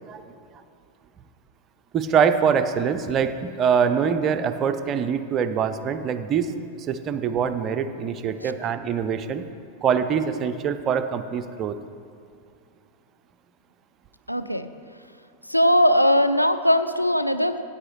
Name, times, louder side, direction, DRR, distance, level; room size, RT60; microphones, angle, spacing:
voice 1, 1.9-6.5 6.9-9.5 9.8-11.8, right 7 dB, 30° right, 10 dB, 0.5 m, -24 dB
voice 2, 14.3-14.7 15.5-17.6, equal, 90° left, 9 dB, 0.4 m, -20 dB
14.0 x 8.7 x 3.1 m, 2.3 s
figure-of-eight pair, 90°, 0 cm